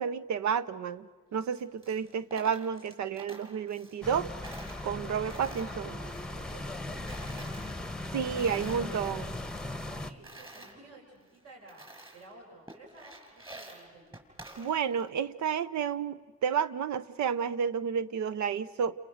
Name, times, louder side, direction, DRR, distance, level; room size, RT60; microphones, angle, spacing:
voice 1, 0.0-4.3 4.8-5.9 8.1-9.3 14.6-18.9, right 7 dB, 75° right, 14 dB, 0.7 m, -31 dB
Coin (dropping), 1.4-4.2 4.4-6.8 7.1-8.9 9.2-10.7 11.3-11.4 11.7-12.3 12.7-15.1, right 1 dB, 20° right, 5.0 m, -50 dB
sound 1, 4.0-10.1, left 2 dB, 5° left, 1.1 m, -38 dB
voice 2, 5.2-7.9 8.5-9.2 9.8-11.9 12.1-14.1, right 2 dB, 55° right, -1 dB, 5.8 m, -52 dB
29.5 x 27.5 x 6.5 m, 1.4 s
cardioid pair, 105°, 29 cm